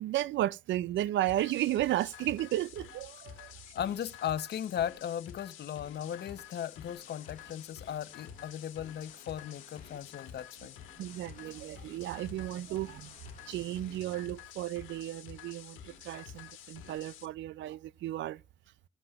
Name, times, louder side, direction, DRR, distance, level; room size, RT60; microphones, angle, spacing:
voice 1, 0.0-3.5 11.0-13.1 13.5-18.4, right 14 dB, 70° right, 0.4 m, -34 dB
sound 1, 1.3-17.3, left 10 dB, 85° left, 1.4 m, -50 dB
voice 2, 3.7-10.7, left 9 dB, 55° left, 0.8 m, -37 dB
sound 2, 6.0-14.0, left 6 dB, 40° left, 1.3 m, -61 dB
17.5 x 7.6 x 2.4 m
cardioid pair, 90°, 20 cm